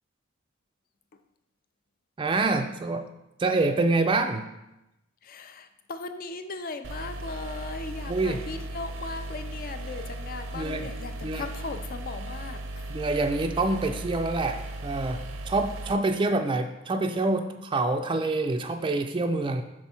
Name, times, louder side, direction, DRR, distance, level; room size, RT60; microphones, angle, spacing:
voice 1, 2.2-3.1 3.4-4.5 8.1-8.4 10.5-10.9 11.2-11.5 12.9-19.6, right 2 dB, 25° right, 6 dB, 0.4 m, -26 dB
voice 2, 5.2-12.8, left 4 dB, 45° left, 9 dB, 0.5 m, -38 dB
sound 1, 6.8-15.9, right 1 dB, 75° right, 0.6 m, -37 dB
6.1 x 4.6 x 4.3 m, 0.91 s
head